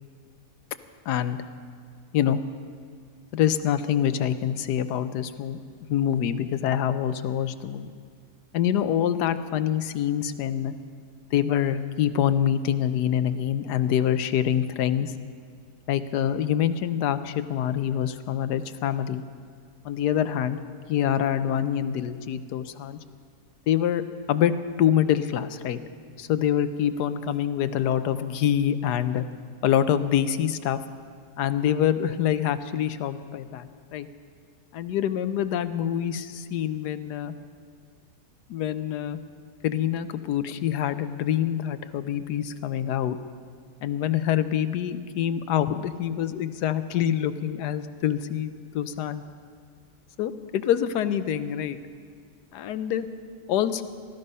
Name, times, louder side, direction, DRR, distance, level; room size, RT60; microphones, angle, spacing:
voice 1, 1.1-1.4 2.1-2.4 3.3-5.6 5.9-7.9 8.5-10.7 11.3-15.1 15.9-19.2 19.8-20.6 20.9-23.0 23.7-24.0 24.3-24.5 24.8-25.8 26.2-29.2 29.6-30.8 31.4-34.1 34.7-37.3 38.5-39.2 39.6-43.2 43.8-49.2 50.2-51.8 52.5-53.1 53.5-53.8, left 10 dB, 80° left, 12 dB, 1.3 m, -25 dB
18.5 x 13.0 x 5.5 m, 2.1 s
omnidirectional pair, 1.8 m